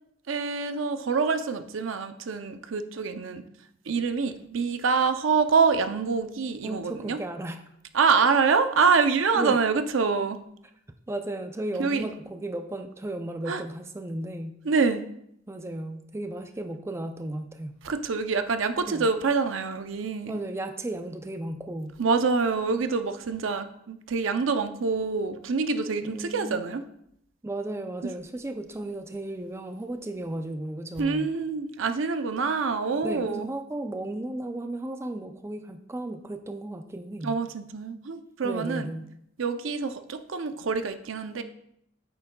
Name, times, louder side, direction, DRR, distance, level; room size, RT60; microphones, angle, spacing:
voice 1, 0.3-3.4 3.9-7.2 7.9-10.4 11.8-12.1 13.5-13.6 14.6-15.0 17.8-20.4 22.0-26.8 28.0-28.1 31.0-33.5 37.2-38.9 39.4-41.4, right 5 dB, 90° right, 9 dB, 0.5 m, -26 dB
voice 2, 6.6-7.6 9.4-9.6 11.1-14.6 15.5-17.8 18.9-19.1 20.3-22.0 26.0-26.7 27.4-31.3 33.0-37.4 38.4-39.1, right 1 dB, 15° right, 7 dB, 0.4 m, -34 dB
8.5 x 6.7 x 2.3 m, 0.73 s
head